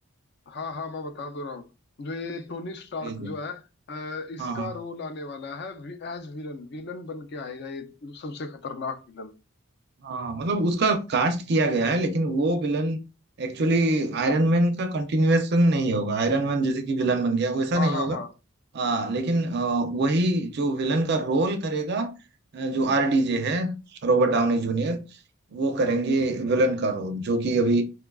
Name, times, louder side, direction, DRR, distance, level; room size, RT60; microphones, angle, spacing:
voice 1, 0.5-1.7 2.0-9.3 17.8-18.3, left 3 dB, 50° left, 0.5 m, -35 dB
voice 2, 4.4-4.7 10.0-13.0 13.4-18.2 18.7-22.1 22.5-25.0 25.5-27.8, right 2 dB, 50° right, 0.4 m, -24 dB
4.5 x 2.3 x 2.3 m
head